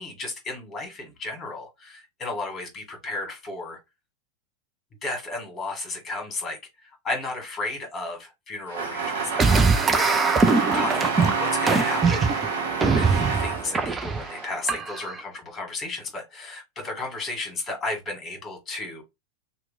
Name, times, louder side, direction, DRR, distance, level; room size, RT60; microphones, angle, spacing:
voice 1, 0.0-3.8 5.0-12.3 12.9-19.0, left 2 dB, 25° left, 1.6 m, -34 dB
sound 1, 8.7-14.5, right 5 dB, 65° right, 0.9 m, -28 dB
sound 2, 9.4-15.2, right 4 dB, 15° right, 0.5 m, -23 dB
2.9 x 2.2 x 3.7 m
figure-of-eight pair, 90°, 0 cm